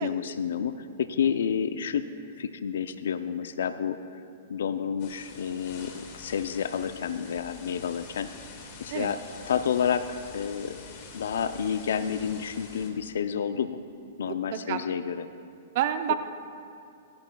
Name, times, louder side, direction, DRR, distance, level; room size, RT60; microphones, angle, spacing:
voice 1, 0.0-2.0 2.4-4.2 4.5-8.3 8.8-10.8 11.1-13.8 14.2-15.3 16.1-16.2, left 7 dB, 80° left, 11 dB, 0.5 m, -30 dB
sound 1, 5.0-12.9, left 4 dB, 45° left, 2.0 m, -46 dB
voice 2, 14.3-14.8 15.7-16.1, right 11 dB, 50° right, 9 dB, 0.6 m, -29 dB
23.5 x 11.5 x 2.3 m, 2.5 s
hypercardioid pair, 140°, 0 cm